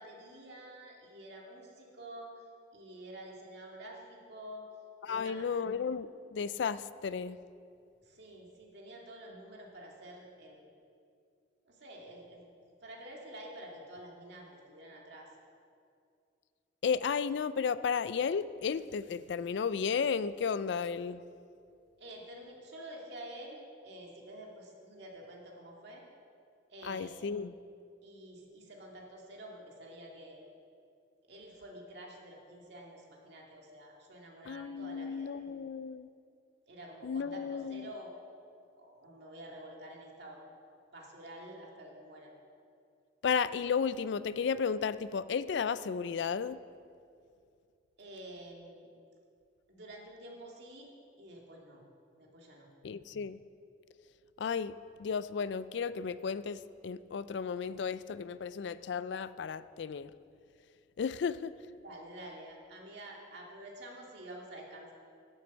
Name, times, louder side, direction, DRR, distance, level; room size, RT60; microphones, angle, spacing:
voice 1, 0.0-2.3 2.7-4.7 5.0-5.4 8.0-10.7 11.6-12.5 12.8-15.3 22.0-26.0 26.7-27.2 28.0-30.5 31.3-35.4 36.7-38.2 38.8-40.4 40.9-42.3 48.0-48.9 49.7-50.9 51.2-51.8 52.2-52.7 61.8-64.9, right 1 dB, 65° right, -1 dB, 2.2 m, -49 dB
voice 2, 5.0-7.4 16.8-21.2 26.8-27.5 34.5-36.1 37.0-37.9 43.2-46.6 52.8-53.4 54.4-54.7 55.0-60.1 61.0-61.5, left 6 dB, 65° left, 16 dB, 0.4 m, -33 dB
11.5 x 7.7 x 7.2 m, 2.4 s
head